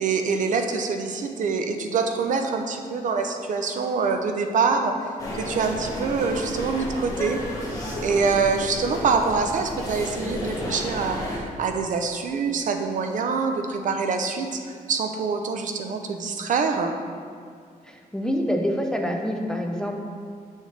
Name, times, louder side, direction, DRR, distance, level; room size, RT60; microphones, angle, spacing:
voice 1, 0.0-4.9 5.3-7.4 8.0-14.6 14.9-16.9, right 5 dB, 60° right, 5 dB, 0.6 m, -25 dB
sound 1, 5.2-11.4, left 1 dB, 25° left, 1.4 m, -32 dB
voice 2, 17.9-20.0, equal, 5° left, 1 dB, 0.5 m, -26 dB
8.1 x 6.4 x 3.3 m, 2.1 s
wide cardioid pair, 170°, 15 cm